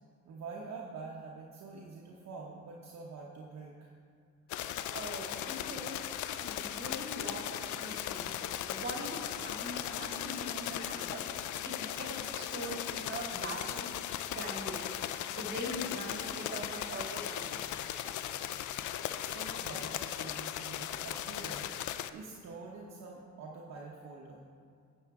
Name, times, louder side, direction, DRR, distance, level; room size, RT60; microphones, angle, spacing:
voice 1, 0.2-3.9 19.2-24.4, right 4 dB, 60° right, -2 dB, 1.0 m, -46 dB
sound 1, 4.5-22.1, left 11 dB, 75° left, 0.5 m, -38 dB
voice 2, 4.9-6.0 6.4-11.3 11.6-14.8 15.3-17.6, equal, 35° right, -2 dB, 2.7 m, -42 dB
12.0 x 7.9 x 3.6 m, 2.2 s
cardioid pair, 90°, 30 cm